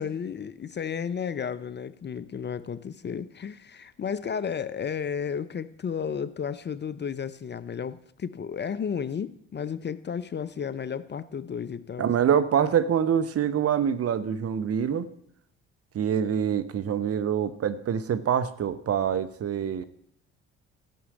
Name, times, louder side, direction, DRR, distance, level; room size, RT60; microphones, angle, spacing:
voice 1, 0.0-12.1, left 7 dB, 30° left, 16 dB, 0.7 m, -33 dB
voice 2, 12.0-15.1 15.9-19.8, right 8 dB, 45° right, 12 dB, 1.0 m, -25 dB
13.0 x 6.2 x 8.4 m, 0.71 s
hypercardioid pair, 55°, 33 cm